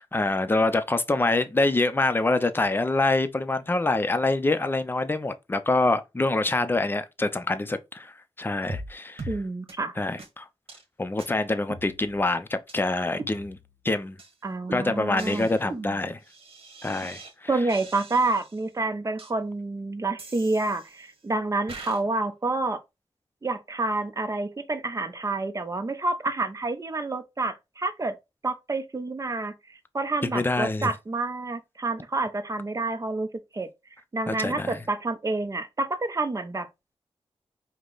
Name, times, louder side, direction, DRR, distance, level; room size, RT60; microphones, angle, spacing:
voice 1, 0.0-9.3 10.0-10.5 11.0-13.6 13.8-14.2 14.7-16.2 16.8-17.5 30.3-30.9 34.3-34.8, left 2 dB, 20° left, 0.6 m, -25 dB
sound 1, 8.7-8.9 9.2-9.4 9.7-9.8 10.2-10.3 10.7-10.8 11.2-11.3 11.7-12.3 12.7-12.8 13.2-13.8 14.2-14.3 14.7-17.3 17.7-18.6 19.2-19.3 20.2-21.1 21.7-22.0, right 2 dB, 65° right, 1.3 m, -41 dB
voice 2, 9.3-9.9 14.4-15.5 17.5-22.8 23.4-28.2 28.4-33.3 33.5-33.7 34.1-36.7, right 2 dB, 35° right, 0.7 m, -28 dB
5.1 x 2.2 x 3.8 m
wide cardioid pair, 85°, 10 cm